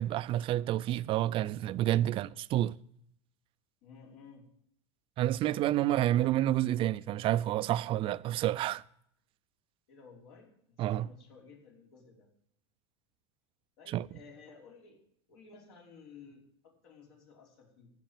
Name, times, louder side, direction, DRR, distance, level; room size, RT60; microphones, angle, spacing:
voice 1, 0.0-2.8 5.2-8.8 10.8-11.1 13.9-14.1, right 13 dB, 40° right, 0.5 m, -29 dB
voice 2, 3.8-4.5 5.8-6.3 9.9-12.3 13.8-15.0 15.3-17.9, left 5 dB, 70° left, 5.1 m, -54 dB
15.5 x 5.8 x 9.0 m
supercardioid pair, 115°, 14 cm